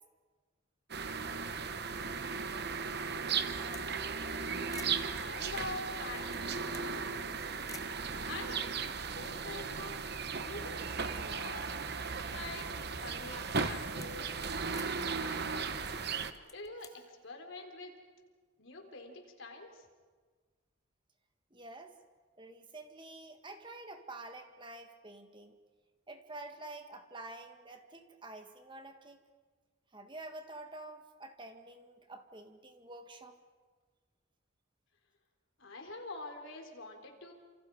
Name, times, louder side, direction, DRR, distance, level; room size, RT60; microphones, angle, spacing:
sound 1, 0.9-16.3, right 5 dB, 50° right, 1.1 m, -36 dB
sound 2, 3.6-3.9 4.2-4.3 4.7-5.1 5.9-7.0 7.7-8.0 8.7-8.8 9.0-9.9 10.3-11.5 12.1-12.8 13.3-14.2 14.7-15.0 16.2-17.0, left 6 dB, 15° left, 0.8 m, -53 dB
voice 1, 5.1-7.5 8.2-8.9 9.1-10.0 10.4-10.9 11.1-11.7 12.3-12.7 13.0-15.7 16.5-18.0 18.6-19.9 35.6-37.3, left 2 dB, 65° left, 3 dB, 3.9 m, -46 dB
voice 2, 21.5-21.9 22.4-25.6 26.1-29.2 29.9-33.4, right 2 dB, 25° right, 5 dB, 1.7 m, -48 dB
29.0 x 27.5 x 4.9 m, 1.5 s
head